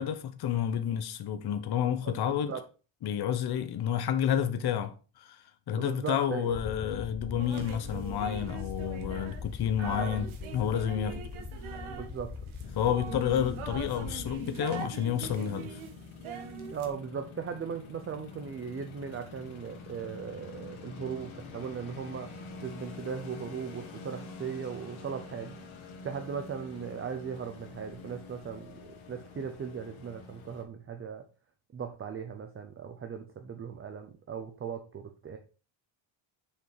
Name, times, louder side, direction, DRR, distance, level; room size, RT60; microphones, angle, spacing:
voice 1, 0.0-2.5 3.0-5.4 5.7-11.2 12.8-15.8, left 9 dB, 50° left, 0.9 m, -30 dB
voice 2, 2.0-2.6 5.7-6.5 9.8-10.2 11.8-12.3 16.7-22.3 22.6-25.6 26.0-31.2 31.7-35.4, right 7 dB, 25° right, 0.6 m, -38 dB
sound 1, 6.5-14.3, left 5 dB, 20° left, 0.6 m, -41 dB
sound 2, 7.4-16.9, right 6 dB, 75° right, 1.5 m, -42 dB
sound 3, 12.6-30.6, left 4 dB, 75° left, 2.2 m, -47 dB
6.8 x 5.4 x 4.7 m
cardioid pair, 175°, 49 cm